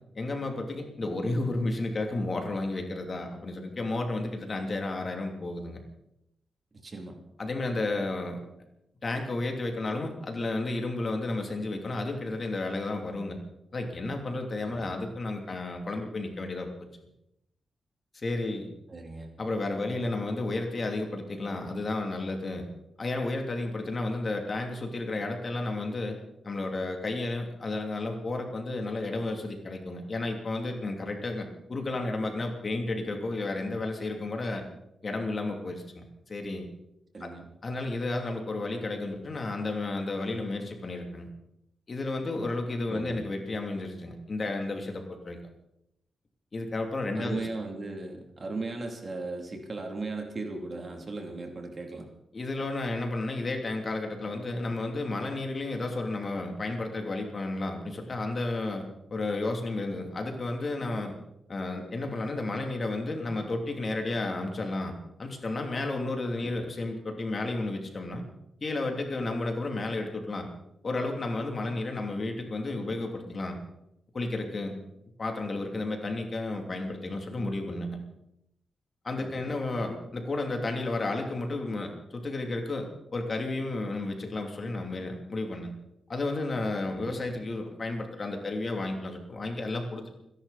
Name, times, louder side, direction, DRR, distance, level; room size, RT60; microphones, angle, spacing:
voice 1, 0.1-5.8 7.4-8.4 9.0-13.4 13.7-16.7 18.1-18.7 19.4-22.7 23.0-26.2 26.4-34.6 35.0-36.6 37.2-37.3 37.6-41.3 41.9-45.4 46.5-47.4 52.3-61.1 61.5-68.2 68.6-70.5 70.8-73.6 74.1-74.7 75.2-78.0 79.0-82.9 83.1-85.7 86.1-90.1, left 2 dB, 45° left, 3 dB, 2.9 m, -32 dB
voice 2, 6.8-7.2 14.6-15.0 18.9-19.3 37.1-37.5 42.9-43.3 47.1-52.1 66.4-66.7 79.2-79.6 86.9-87.2, right 3 dB, 45° right, 3 dB, 2.9 m, -37 dB
29.0 x 11.0 x 4.2 m, 0.82 s
cardioid pair, 85°, 0 cm